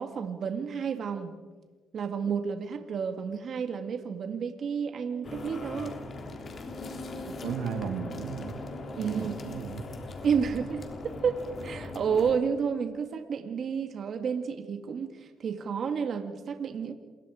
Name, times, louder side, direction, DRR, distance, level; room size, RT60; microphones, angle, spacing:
voice 1, 0.0-1.4 1.9-6.0 9.0-9.4 10.2-16.9, right 6 dB, 55° right, 7 dB, 2.0 m, -31 dB
sound 1, 5.2-12.4, left 2 dB, 45° left, 3.3 m, -39 dB
voice 2, 7.4-8.5 9.0-9.8, right 7 dB, 85° right, 7 dB, 2.1 m, -35 dB
27.5 x 22.5 x 5.0 m, 1.3 s
cardioid pair, 90°, 0 cm